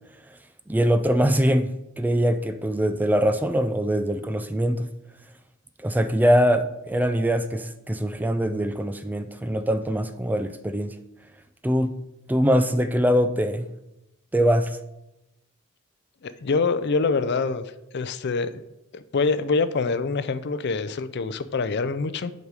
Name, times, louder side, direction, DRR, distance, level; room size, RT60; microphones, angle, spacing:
voice 1, 0.7-4.9 5.8-11.0 11.6-12.0 12.3-13.7 14.3-14.8, equal, 10° right, 0.3 m, -23 dB
voice 2, 16.2-17.6 17.9-18.5 18.9-22.3, left 4 dB, 55° left, 0.5 m, -25 dB
8.1 x 5.2 x 4.8 m
head